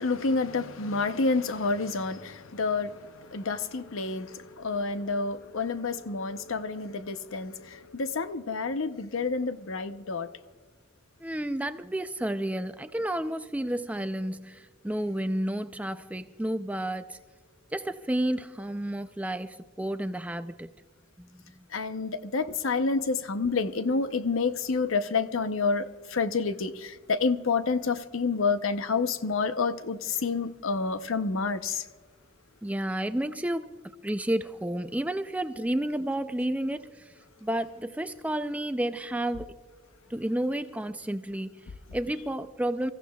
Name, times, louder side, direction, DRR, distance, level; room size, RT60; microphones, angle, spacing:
voice 1, 0.0-2.9 3.3-4.3 4.6-10.3 21.7-25.9 26.1-31.8, left 4 dB, 75° left, 0.7 m, -28 dB
voice 2, 11.2-17.2 17.7-20.7 21.2-21.4 32.6-33.8 34.0-37.1 37.4-39.5 40.1-42.9, right 1 dB, 5° right, 0.4 m, -31 dB
28.0 x 15.0 x 2.3 m
head